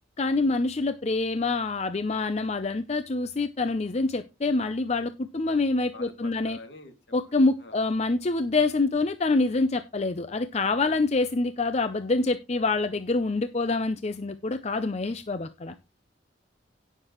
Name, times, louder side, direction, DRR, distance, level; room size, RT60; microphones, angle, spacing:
voice 1, 0.2-6.6 7.1-15.7, left 3 dB, 35° left, 11 dB, 0.5 m, -26 dB
voice 2, 5.9-6.9 7.6-7.8 10.8-11.0, left 2 dB, 70° left, 5 dB, 2.4 m, -45 dB
17.0 x 6.7 x 3.0 m, 0.26 s
head